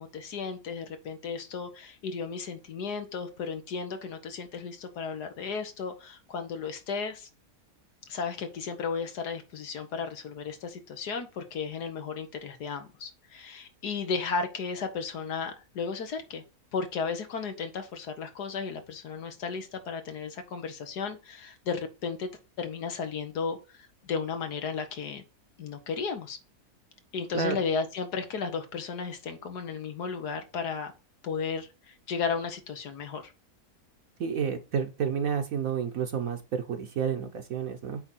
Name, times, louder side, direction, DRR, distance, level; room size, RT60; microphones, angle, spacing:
voice 1, 0.0-7.3 8.1-16.4 16.7-22.3 22.6-25.2 25.6-26.4 27.1-30.9 31.2-33.3, left 5 dB, 85° left, 1.8 m, -34 dB
voice 2, 34.2-38.0, right 7 dB, 65° right, 1.3 m, -30 dB
8.8 x 3.8 x 4.2 m
omnidirectional pair, 1.7 m